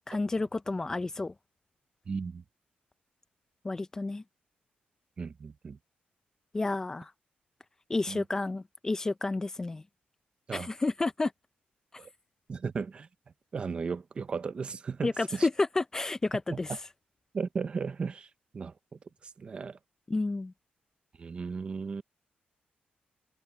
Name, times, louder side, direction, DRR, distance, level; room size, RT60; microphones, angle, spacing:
voice 1, 0.1-1.3 3.6-4.2 6.5-7.1 7.9-9.8 10.5-11.3 15.0-16.7 20.1-20.5, left 3 dB, 15° left, 0.5 m, -30 dB
voice 2, 2.1-2.4 5.2-5.8 8.1-8.2 10.5-10.7 12.0-12.1 12.5-13.1 13.5-15.5 16.5-16.8 17.3-18.3 18.5-18.7 19.4-19.8 21.2-22.0, right 5 dB, 35° right, 0.8 m, -35 dB
wide cardioid pair, 165°, 3 cm